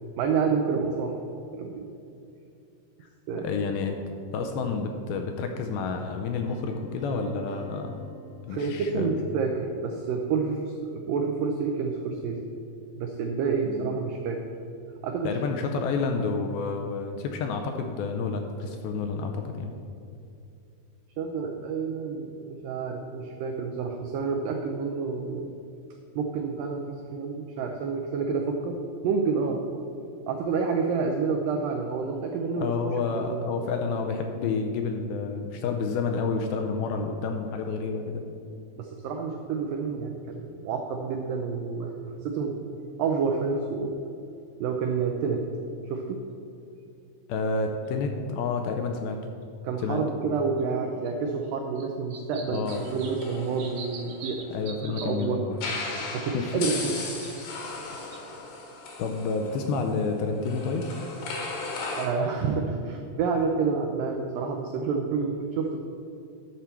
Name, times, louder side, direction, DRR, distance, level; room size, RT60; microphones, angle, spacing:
voice 1, 0.2-1.2 1.5-1.9 3.3-3.5 8.5-12.4 13.0-14.4 15.0-15.4 21.2-25.5 26.2-28.8 29.0-29.6 30.3-32.7 33.2-33.7 38.8-42.6 43.0-43.9 44.6-45.4 45.9-46.2 49.6-54.4 54.9-55.5 56.1-57.0 62.0-65.8, right 5 dB, 85° right, 3 dB, 1.9 m, -29 dB
voice 2, 3.3-4.0 4.3-8.0 8.5-9.1 13.7-13.9 15.2-19.7 32.6-38.2 47.3-49.2 49.8-50.0 52.5-52.8 54.5-55.6 56.3-56.6 59.0-60.8, left 4 dB, 80° left, 4 dB, 2.3 m, -29 dB
sound 1, 6.5-9.4, right 4 dB, 45° right, 1.4 m, -51 dB
sound 2, 47.9-48.0 49.4-49.5 50.6-50.7 51.1-51.2 51.8-55.3 56.2-56.5 57.1-57.7 58.1-58.2, right 5 dB, 65° right, 2.2 m, -43 dB
sound 3, 52.7-54.7 55.5-62.1, left 3 dB, 65° left, 2.5 m, -37 dB
11.0 x 4.4 x 6.8 m, 2.6 s
omnidirectional pair, 4.7 m